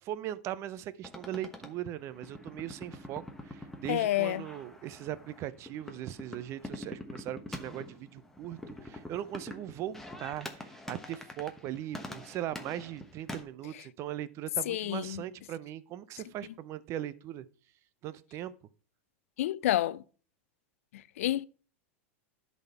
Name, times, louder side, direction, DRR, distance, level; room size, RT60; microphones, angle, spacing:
voice 1, 0.0-17.5 18.0-18.5, right 12 dB, 40° right, 0.5 m, -39 dB
sound 1, 1.0-13.4, left 1 dB, 5° left, 1.1 m, -45 dB
voice 2, 3.9-4.4 14.7-15.2 19.4-20.0 20.9-21.5, left 14 dB, 80° left, 0.4 m, -29 dB
10.5 x 4.2 x 5.5 m
supercardioid pair, 125°, 7 cm